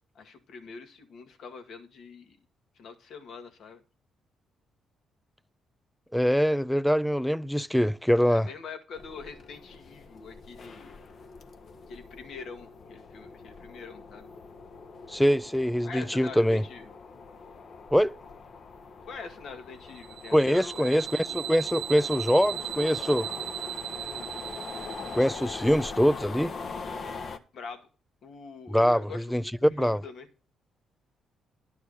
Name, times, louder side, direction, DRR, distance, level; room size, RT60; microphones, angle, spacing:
voice 1, 0.2-2.4 2.8-3.8 8.3-10.9 11.9-14.3 15.8-16.8 19.1-21.0 21.3-21.5 27.5-27.9 28.2-30.3, left 5 dB, 70° left, 1.9 m, -44 dB
voice 2, 6.1-8.5 15.1-16.6 17.9-18.2 20.3-23.3 25.1-26.5 28.7-30.0, equal, ahead, 0.4 m, -24 dB
sound 1, 8.9-27.4, left 4 dB, 50° left, 1.1 m, -42 dB
sound 2, 19.9-25.9, right 11 dB, 80° right, 1.0 m, -37 dB
11.0 x 4.7 x 6.6 m
cardioid pair, 90°, 0 cm